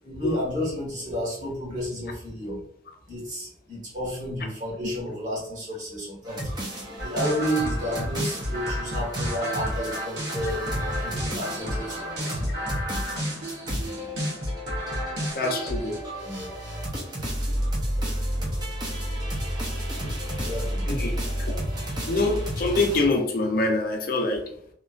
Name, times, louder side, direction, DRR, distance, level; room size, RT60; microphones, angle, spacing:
voice 1, 0.0-2.6 3.1-10.7 11.0-12.4 16.2-16.5 20.4-20.8, equal, 45° right, -6 dB, 1.4 m, -32 dB
sound 1, 6.2-23.1, equal, 20° right, 0.6 m, -32 dB
sound 2, 7.0-16.0, equal, 65° right, 0.9 m, -31 dB
voice 2, 15.3-16.0 20.9-21.6 22.1-24.4, left 2 dB, 50° left, 3 dB, 0.5 m, -25 dB
2.9 x 2.4 x 2.4 m, 0.65 s
head